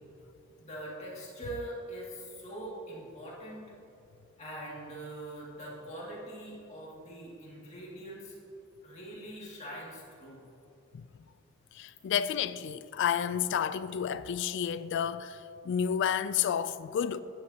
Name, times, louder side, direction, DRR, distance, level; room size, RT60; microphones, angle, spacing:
voice 1, 0.6-3.6 4.4-8.3 8.8-10.4, right 1 dB, 35° left, 2.3 m, -43 dB
voice 2, 11.7-17.2, left 8 dB, 60° left, 0.3 m, -31 dB
11.5 x 10.0 x 2.9 m
head